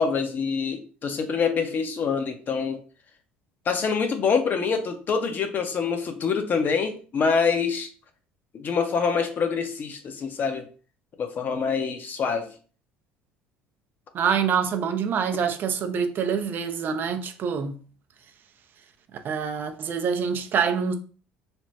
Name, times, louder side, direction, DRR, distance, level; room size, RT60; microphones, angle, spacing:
voice 1, 0.0-2.8 3.7-7.9 8.5-10.7 11.2-12.5, left 5 dB, 45° left, 0.6 m, -25 dB
voice 2, 14.1-17.8 19.2-20.9, right 6 dB, 50° right, 0.5 m, -26 dB
3.3 x 2.1 x 2.7 m
hypercardioid pair, 70°, 5 cm